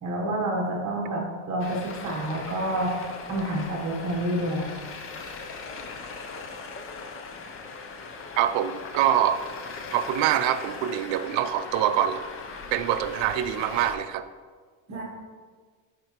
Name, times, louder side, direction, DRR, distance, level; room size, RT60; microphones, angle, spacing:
voice 1, 0.0-2.9 3.3-4.8 14.9-15.0, right 1 dB, 35° right, -2 dB, 1.1 m, -28 dB
Traffic noise roadway noise, 1.6-13.9, left 4 dB, 30° left, 0.5 m, -39 dB
voice 2, 8.4-9.4 9.9-12.2 12.7-14.2, right 11 dB, 80° right, 9 dB, 0.5 m, -24 dB
7.8 x 4.9 x 2.9 m, 1.5 s
cardioid pair, 155°, 45 cm